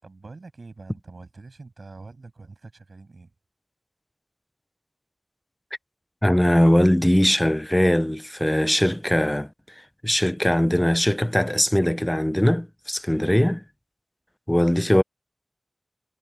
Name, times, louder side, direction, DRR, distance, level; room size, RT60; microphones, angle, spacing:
voice 1, 0.0-3.3, right 3 dB, 75° right, 7.0 m, -44 dB
voice 2, 6.2-9.5 10.0-13.6 14.5-15.0, left 1 dB, 10° left, 0.4 m, -20 dB
wide cardioid pair, 50°, 0 cm